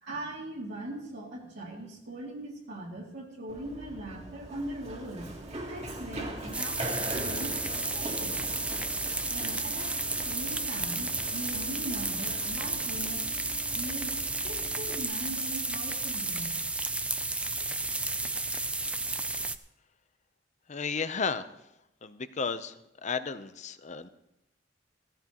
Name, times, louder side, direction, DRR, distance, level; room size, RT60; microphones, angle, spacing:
voice 1, 0.0-5.4 5.7-8.4 9.3-10.0 10.3-13.2 13.7-14.2 14.4-16.6, right 1 dB, 65° right, -4 dB, 2.4 m, -40 dB
Run, 3.5-15.0, right 1 dB, 35° right, 1.9 m, -41 dB
sound 1, 6.5-19.6, right 2 dB, 5° right, 0.4 m, -32 dB
voice 2, 20.7-21.5 22.0-22.7 23.0-24.1, left 5 dB, 40° left, 12 dB, 0.6 m, -33 dB
16.0 x 14.5 x 3.0 m, 0.86 s
head